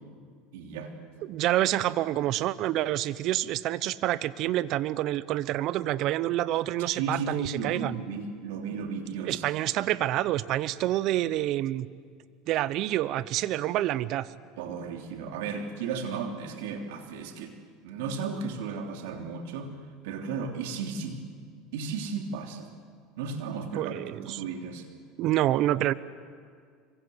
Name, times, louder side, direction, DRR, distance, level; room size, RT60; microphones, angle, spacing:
voice 1, 0.5-1.3 6.8-9.4 14.6-17.5 17.8-19.7 20.0-21.2 21.7-22.7 23.2-24.9, right 5 dB, 80° right, 4 dB, 3.3 m, -35 dB
voice 2, 1.3-8.0 9.3-11.9 12.5-14.3 23.8-24.4 25.2-25.9, right 14 dB, 55° right, 17 dB, 0.9 m, -27 dB
26.0 x 24.0 x 8.1 m, 2.1 s
supercardioid pair, 100°, 0 cm